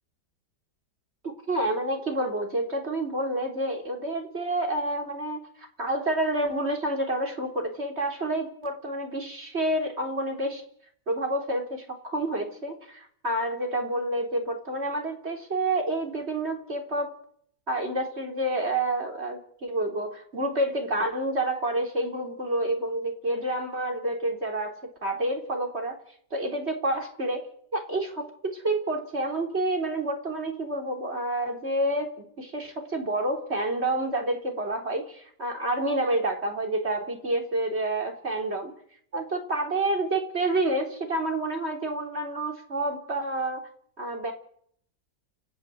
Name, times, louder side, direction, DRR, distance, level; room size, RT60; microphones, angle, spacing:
voice 1, 1.5-10.6 11.1-17.1 17.7-24.7 25.0-26.0 26.3-27.4 27.7-38.7 39.1-43.7 44.0-44.3, right 1 dB, 35° right, 3 dB, 4.2 m, -29 dB
29.5 x 15.0 x 8.0 m, 0.64 s
omnidirectional pair, 1.9 m